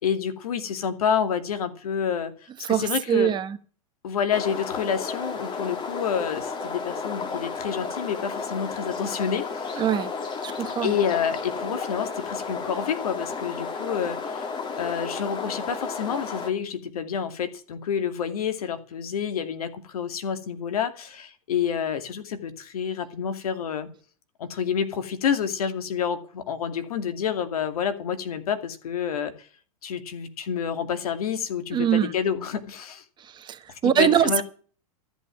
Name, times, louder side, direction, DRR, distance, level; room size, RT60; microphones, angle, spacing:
voice 1, 0.0-2.3 2.6-3.3 4.0-9.8 10.8-14.5 14.8-23.9 24.4-29.5 29.8-33.0 33.8-34.4, left 7 dB, 80° left, 9 dB, 2.4 m, -28 dB
voice 2, 2.6-3.6 9.8-10.1 10.4-10.9 31.7-32.1 33.2-34.4, right 9 dB, 25° right, 9 dB, 1.2 m, -23 dB
sound 1, 4.3-16.5, left 4 dB, 25° left, 2.4 m, -33 dB
13.5 x 8.4 x 7.5 m, 0.41 s
hypercardioid pair, 125°, 19 cm